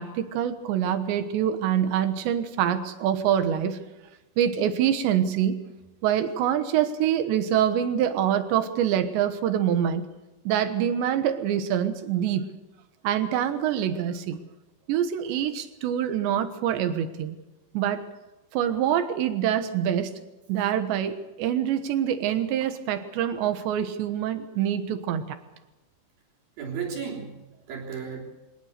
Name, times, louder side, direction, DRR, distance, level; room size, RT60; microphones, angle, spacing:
voice 1, 0.0-3.8 4.4-5.7 6.0-10.1 10.4-12.5 13.0-14.4 14.9-17.4 17.7-18.0 18.5-20.1 20.5-25.4, right 9 dB, 70° right, 9 dB, 3.3 m, -25 dB
voice 2, 26.6-28.2, right 6 dB, 50° right, -1 dB, 4.9 m, -34 dB
23.5 x 19.5 x 6.7 m, 1.1 s
omnidirectional pair, 5.7 m